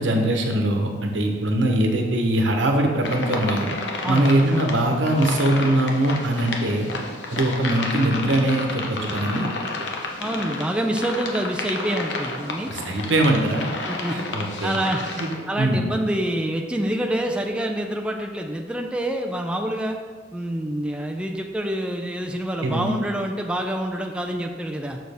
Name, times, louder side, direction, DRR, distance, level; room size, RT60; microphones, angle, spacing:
voice 1, 0.0-3.7 4.1-6.9 7.3-9.5 12.7-13.7 14.1-14.8 15.2-15.3 15.6-15.9 22.6-23.0, right 1 dB, 85° right, 3 dB, 1.0 m, -22 dB
sound 1, 3.0-15.4, left 2 dB, 70° left, 0.8 m, -31 dB
voice 2, 4.0-4.4 10.2-12.7 13.9-14.2 14.6-15.0 15.5-20.0 20.3-25.0, right 1 dB, 5° right, 1 dB, 0.4 m, -26 dB
6.5 x 6.4 x 3.4 m, 1.5 s
head